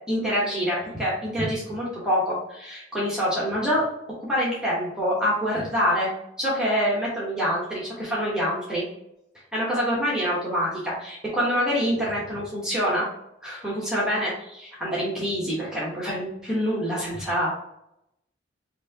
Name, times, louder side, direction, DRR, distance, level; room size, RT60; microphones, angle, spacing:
voice 1, 0.1-3.8 4.2-6.1 6.4-8.8 9.5-13.1 13.4-17.5, equal, 5° right, -7 dB, 1.1 m, -26 dB
4.4 x 2.7 x 2.8 m, 0.80 s
head